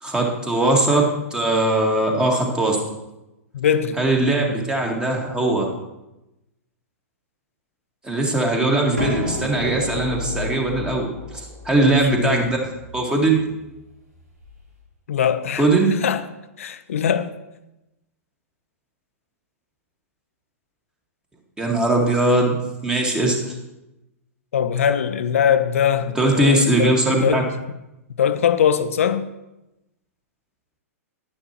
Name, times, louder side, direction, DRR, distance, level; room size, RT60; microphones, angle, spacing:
voice 1, 0.0-2.8 4.0-5.7 8.0-11.1 11.3-12.6 12.9-13.4 15.6-15.9 21.6-23.5 26.1-27.4, right 2 dB, 10° right, 1.7 m, -20 dB
voice 2, 3.5-4.0 11.8-12.4 15.1-15.7 16.0-16.3 16.6-17.3 24.5-27.5 28.2-29.3, left 8 dB, 60° left, 0.6 m, -21 dB
sound 1, 9.0-14.6, left 1 dB, 85° right, 2.3 m, -32 dB
10.5 x 9.9 x 3.0 m
figure-of-eight pair, 105°, 8 cm